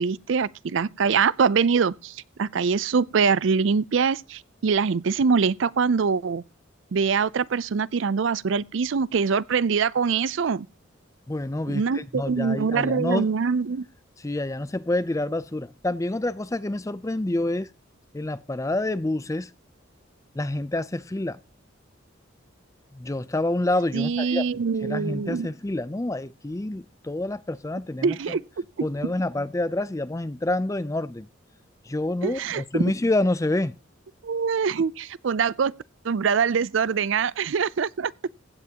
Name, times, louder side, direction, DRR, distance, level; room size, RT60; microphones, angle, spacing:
voice 1, 0.0-6.4 6.9-10.7 11.7-13.9 23.9-25.5 28.0-28.4 28.8-29.1 32.2-32.9 34.2-35.7 36.0-38.1, right 5 dB, 65° right, 0.4 m, -24 dB
voice 2, 11.3-13.3 14.2-17.7 18.1-19.5 20.3-21.4 22.9-24.4 24.8-28.4 28.8-31.3 31.9-33.7, left 2 dB, 15° left, 0.4 m, -27 dB
15.5 x 9.3 x 2.9 m
head